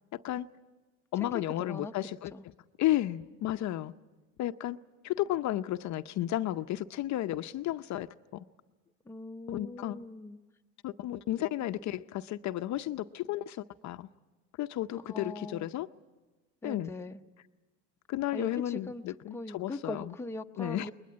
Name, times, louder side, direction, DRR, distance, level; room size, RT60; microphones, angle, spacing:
voice 1, 0.1-0.5 1.1-2.3 2.8-3.9 4.4-4.8 5.0-8.4 9.5-10.0 10.8-14.1 14.6-15.9 16.6-16.9 18.1-20.1 20.6-20.9, left 14 dB, 50° left, 0.7 m, -33 dB
voice 2, 1.6-1.9 2.3-2.4 9.1-10.4 15.1-15.7 16.6-17.2 18.3-20.9, left 2 dB, 5° left, 0.8 m, -41 dB
21.0 x 20.5 x 9.5 m
supercardioid pair, 95°, 36 cm